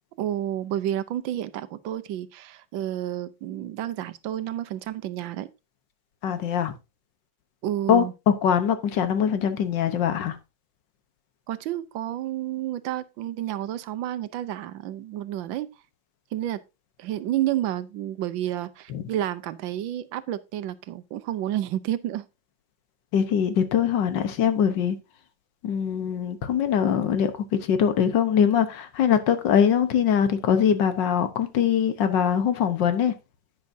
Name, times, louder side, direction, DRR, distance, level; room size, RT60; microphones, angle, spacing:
voice 1, 0.2-5.5 7.6-8.1 11.5-15.7 16.3-16.6 17.0-22.2, right 12 dB, 85° right, 1.5 m, -30 dB
voice 2, 6.2-6.7 7.9-10.4 18.9-19.0 23.1-25.0 25.6-33.1, left 8 dB, 75° left, 1.7 m, -22 dB
10.5 x 9.4 x 2.7 m
omnidirectional pair, 2.0 m